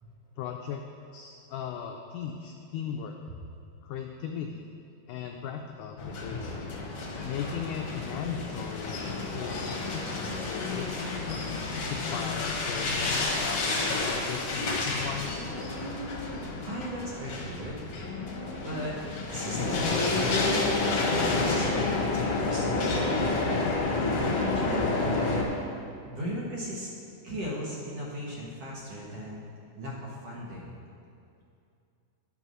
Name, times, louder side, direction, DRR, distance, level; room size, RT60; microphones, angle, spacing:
voice 1, 0.4-0.8 1.1-3.2 3.8-4.6 5.1-6.6 7.2-11.0 11.9-15.3, left 8 dB, 85° left, 3 dB, 1.8 m, -37 dB
sound 1, 6.0-25.4, left 3 dB, 60° left, 1.6 m, -30 dB
voice 2, 16.6-17.8 18.6-19.0 19.3-20.5 21.1-23.2 24.4-25.0 26.0-26.9 27.2-29.4 29.8-30.8, equal, 55° right, -5 dB, 2.0 m, -37 dB
10.5 x 5.4 x 6.1 m, 2.5 s
omnidirectional pair, 4.2 m